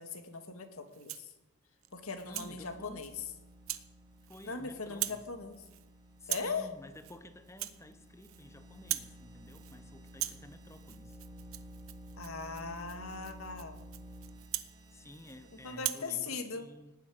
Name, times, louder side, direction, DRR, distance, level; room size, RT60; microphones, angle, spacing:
voice 1, 0.0-1.3 1.9-3.1 4.4-5.6 6.3-6.7 12.2-13.8 15.6-16.7, left 4 dB, 80° left, 6 dB, 2.1 m, -39 dB
Rattle (instrument), 0.9-1.3 1.8-2.5 3.0-3.2 3.7-3.9 4.2-4.6 4.9-5.3 5.5-5.9 6.2-6.6 6.9-7.2 7.5-8.5 8.7-9.2 9.5-9.8 10.1-15.4 15.7-16.1, right 14 dB, 75° right, 0.9 m, -41 dB
sound 1, 1.9-15.7, equal, 20° right, 2.4 m, -53 dB
voice 2, 2.2-3.1 4.3-5.3 6.2-11.2 14.9-16.9, left 1 dB, 15° left, 10 dB, 1.1 m, -52 dB
18.5 x 8.5 x 9.4 m, 0.98 s
head